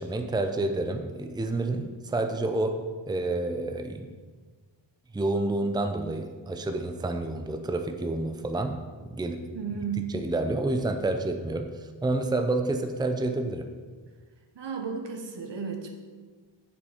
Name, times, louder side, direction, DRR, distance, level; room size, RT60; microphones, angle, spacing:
voice 1, 0.0-2.8 3.1-4.1 5.1-9.4 10.1-11.7 12.0-13.7, right 2 dB, 10° right, 6 dB, 0.6 m, -29 dB
voice 2, 9.5-10.1 14.5-15.9, right 6 dB, 75° right, 3 dB, 1.3 m, -33 dB
7.3 x 7.0 x 5.0 m, 1.4 s
wide cardioid pair, 95°, 43 cm